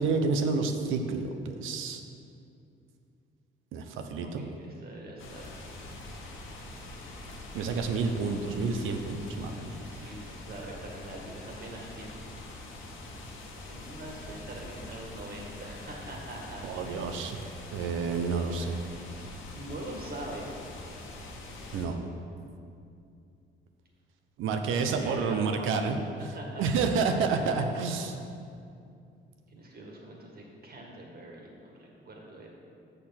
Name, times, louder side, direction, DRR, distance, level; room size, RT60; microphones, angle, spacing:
voice 1, 0.0-2.0 3.7-4.4 7.5-10.2 16.6-17.4 17.7-18.8 21.7-22.0 24.4-26.0 26.6-28.2, right 4 dB, 90° right, 6 dB, 0.8 m, -29 dB
voice 2, 4.2-5.9 6.3-6.5 9.7-12.2 13.6-17.1 19.5-20.6 24.6-25.9 26.3-27.5 29.5-32.5, right 1 dB, 50° right, -1 dB, 1.9 m, -43 dB
sound 1, 5.2-21.9, left 2 dB, 85° left, 1.2 m, -44 dB
6.6 x 6.6 x 5.8 m, 2.5 s
cardioid pair, 90°, 20 cm